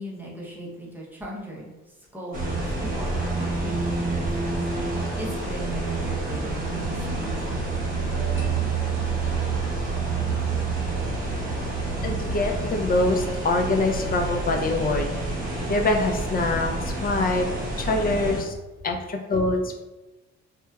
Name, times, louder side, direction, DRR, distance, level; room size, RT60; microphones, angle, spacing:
voice 1, 0.0-4.6 5.1-7.7, equal, 5° right, -4 dB, 0.7 m, -39 dB
sound 1, 2.3-18.4, right 3 dB, 30° right, 1.0 m, -28 dB
sound 2, 8.3-17.9, left 4 dB, 55° left, 0.9 m, -41 dB
voice 2, 12.0-15.1 15.7-17.5 17.8-18.5 18.8-19.8, left 2 dB, 30° left, 4 dB, 0.4 m, -24 dB
2.8 x 2.2 x 2.2 m, 1.1 s
cardioid pair, 90°, 30 cm